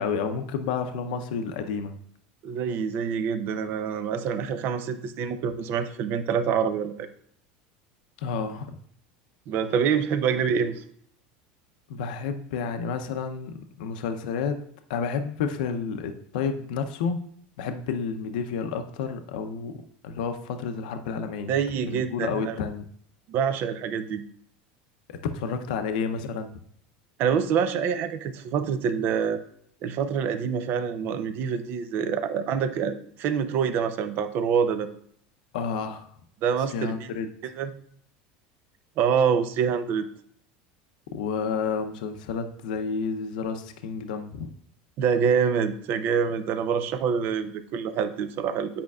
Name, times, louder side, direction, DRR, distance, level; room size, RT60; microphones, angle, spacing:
voice 1, 0.0-1.9 8.2-8.8 11.9-14.6 14.9-17.3 17.6-21.5 21.9-22.9 25.1-26.5 35.5-36.1 36.7-37.3 41.1-44.5, left 5 dB, 80° left, 7 dB, 0.6 m, -30 dB
voice 2, 2.4-7.1 9.5-10.8 21.5-22.6 23.3-24.2 27.2-29.4 29.8-34.9 36.4-37.1 37.6-37.7 39.0-40.1 45.0-48.8, right 7 dB, 50° right, 11 dB, 0.6 m, -26 dB
8.5 x 5.2 x 2.3 m, 0.64 s
supercardioid pair, 130°, 4 cm